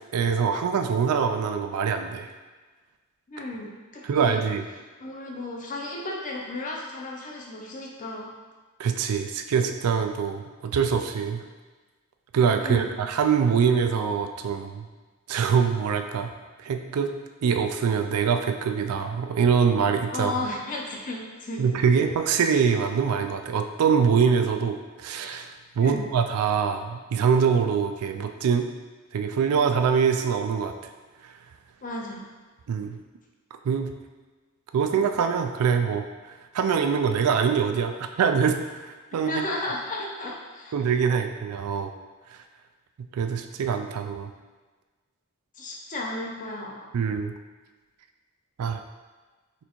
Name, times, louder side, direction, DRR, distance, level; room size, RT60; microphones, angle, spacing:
voice 1, 0.1-2.3 4.0-4.7 8.8-11.4 12.3-14.8 15.3-16.3 16.6-17.1 17.4-20.3 21.6-28.7 29.1-30.7 31.2-31.3 32.7-33.0 33.6-33.9 34.7-36.0 36.5-39.4 40.7-41.9 43.1-44.3 46.9-47.3 48.6-48.8, right 6 dB, 85° right, 6 dB, 0.3 m, -24 dB
voice 2, 3.3-4.4 5.0-8.3 12.6-12.9 20.1-21.7 25.8-26.0 31.8-32.3 39.1-40.8 45.6-47.0, left 2 dB, 35° left, -1 dB, 0.6 m, -34 dB
4.2 x 3.3 x 3.0 m, 1.3 s
head